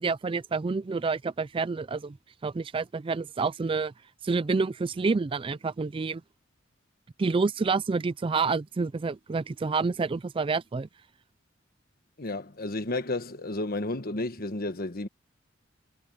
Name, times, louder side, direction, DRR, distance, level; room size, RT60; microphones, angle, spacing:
voice 1, 0.0-2.2 2.4-3.9 4.2-6.2 7.2-10.9, right 4 dB, 25° right, 0.4 m, -28 dB
voice 2, 12.2-15.1, left 2 dB, 50° left, 1.3 m, -32 dB
head